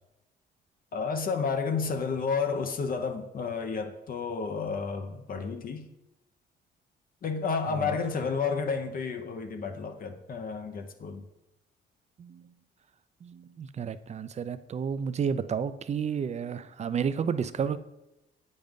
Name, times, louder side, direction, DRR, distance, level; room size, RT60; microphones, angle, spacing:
voice 1, 0.9-5.9 7.2-11.2, left 5 dB, 45° left, 0.7 m, -31 dB
voice 2, 7.7-8.0 12.2-12.5 13.2-17.8, right 7 dB, 35° right, 0.4 m, -31 dB
7.7 x 5.2 x 3.6 m
cardioid pair, 90°, 20 cm